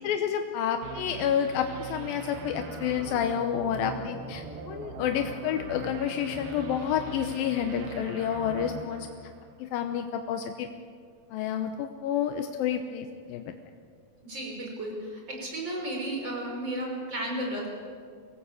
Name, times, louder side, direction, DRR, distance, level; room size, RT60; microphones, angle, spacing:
voice 1, 0.0-9.1 9.6-10.7 11.3-13.5, left 9 dB, 85° left, 6 dB, 2.7 m, -29 dB
sound 1, 0.8-9.9, right 5 dB, 70° right, 3.1 m, -41 dB
voice 2, 14.2-17.7, right 1 dB, 30° right, 0 dB, 6.3 m, -33 dB
25.0 x 18.0 x 8.4 m, 2.2 s
omnidirectional pair, 4.1 m